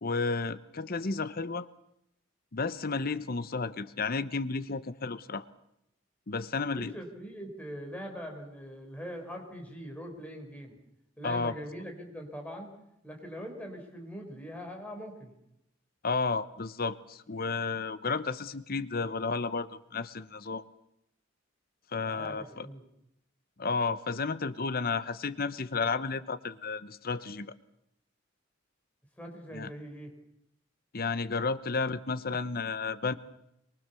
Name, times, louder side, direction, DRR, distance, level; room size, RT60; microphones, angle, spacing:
voice 1, 0.0-1.7 2.5-5.4 6.3-6.9 11.2-11.5 16.0-20.6 21.9-22.7 23.6-27.5 29.5-29.7 30.9-33.1, left 4 dB, 45° left, 14 dB, 0.9 m, -32 dB
voice 2, 6.8-10.8 11.2-12.7 13.0-15.3 22.0-22.8 29.2-30.1, equal, 5° left, 2 dB, 4.6 m, -42 dB
23.5 x 23.0 x 6.9 m, 0.79 s
head